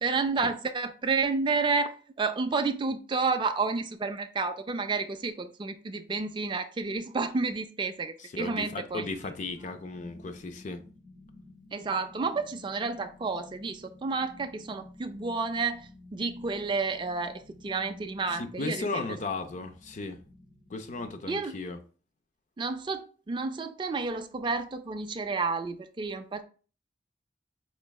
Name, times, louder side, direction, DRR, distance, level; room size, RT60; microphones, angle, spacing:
voice 1, 0.0-9.1 11.7-19.1 21.3-21.5 22.6-26.4, right 4 dB, 25° right, 0.3 m, -30 dB
voice 2, 8.2-10.9 18.3-20.2 20.7-21.8, left 3 dB, 45° left, 0.4 m, -36 dB
sound 1, 8.9-21.1, left 2 dB, 70° left, 1.8 m, -52 dB
4.4 x 3.1 x 2.2 m
head